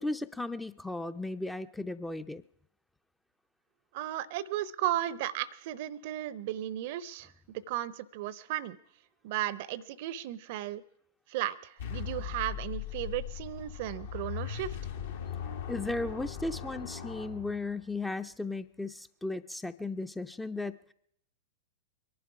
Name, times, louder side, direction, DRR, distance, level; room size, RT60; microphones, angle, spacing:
voice 1, 0.0-2.4 15.7-20.9, left 2 dB, 5° left, 11 dB, 0.5 m, -36 dB
voice 2, 3.9-8.8 9.2-10.8 11.3-14.8, right 13 dB, 50° right, 20 dB, 0.6 m, -35 dB
sound 1, 11.8-18.0, left 8 dB, 65° left, 2.0 m, -39 dB
23.5 x 11.0 x 4.8 m, 0.72 s
figure-of-eight pair, 100°, 0 cm